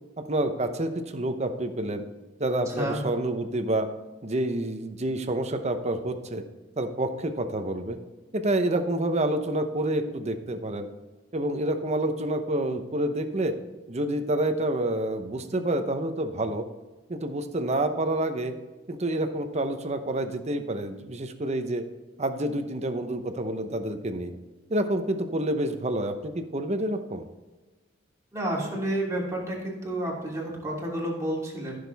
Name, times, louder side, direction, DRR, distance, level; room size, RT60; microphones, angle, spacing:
voice 1, 0.3-2.0 2.4-3.9 4.2-6.4 6.8-8.0 8.3-10.9 11.3-13.5 13.9-16.6 17.1-18.5 18.9-21.8 22.2-24.3 24.7-27.2, right 1 dB, 35° right, 7 dB, 0.9 m, -28 dB
voice 2, 28.3-31.7, right 1 dB, 15° right, -4 dB, 3.0 m, -30 dB
14.5 x 6.6 x 3.5 m, 1.2 s
head